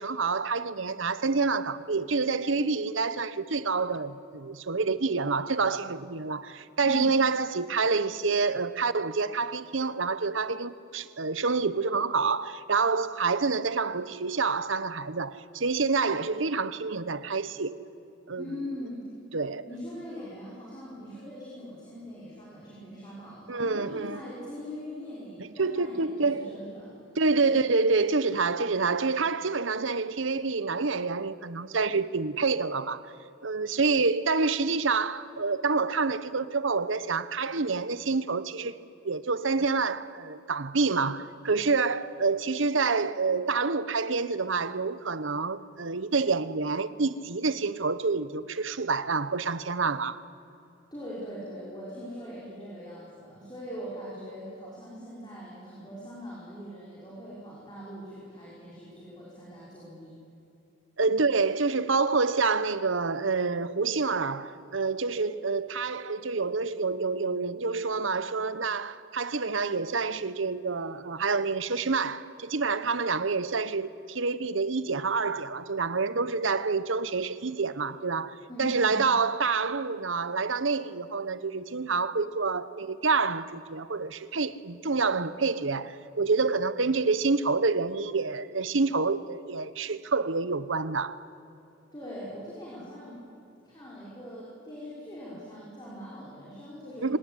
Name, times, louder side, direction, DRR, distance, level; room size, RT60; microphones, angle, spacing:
voice 1, 0.0-17.8 18.3-18.6 19.3-19.7 23.5-24.3 25.6-26.5 27.2-33.0 33.4-38.8 39.0-50.2 61.0-91.2 97.0-97.2, right 4 dB, 75° right, 1.0 m, -27 dB
voice 2, 18.4-19.1 19.7-27.0 27.4-27.6 50.9-60.1 78.5-79.0 91.9-93.2 93.6-97.2, equal, 20° left, 5.9 m, -42 dB
25.0 x 19.0 x 9.9 m
head